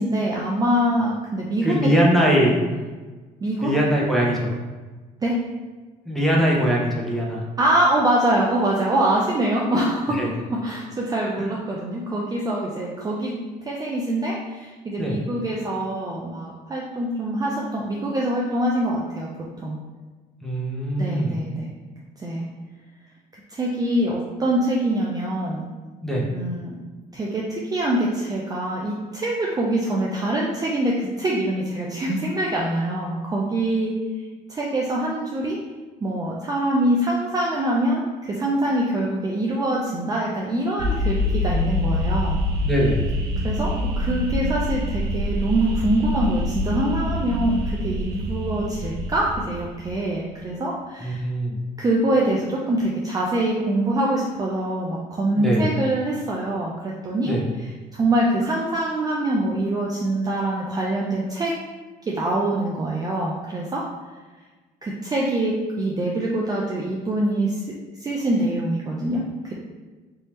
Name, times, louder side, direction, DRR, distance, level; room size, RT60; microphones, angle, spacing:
voice 1, 0.0-1.9 3.4-3.7 5.2-5.4 7.6-10.2 10.5-13.3 13.6-19.3 19.6-19.8 21.0-21.7 22.2-22.5 23.5-25.6 26.3-26.7 27.1-34.0 34.5-35.6 36.0-42.4 43.4-51.2 51.8-61.5 62.0-63.8 64.8-67.6 68.0-69.5, right 1 dB, 20° right, -3 dB, 0.4 m, -24 dB
voice 2, 1.6-2.6 3.6-4.5 6.1-7.4 10.1-10.3 11.4-11.5 15.0-15.2 20.4-21.4 26.0-26.3 42.6-43.0 51.0-51.6 55.4-55.7 57.2-57.4, equal, ahead, -4 dB, 0.8 m, -21 dB
sound 1, 40.8-50.0, left 1 dB, 80° right, 0.4 m, -26 dB
3.4 x 2.7 x 3.0 m, 1.3 s
cardioid pair, 110°, 17 cm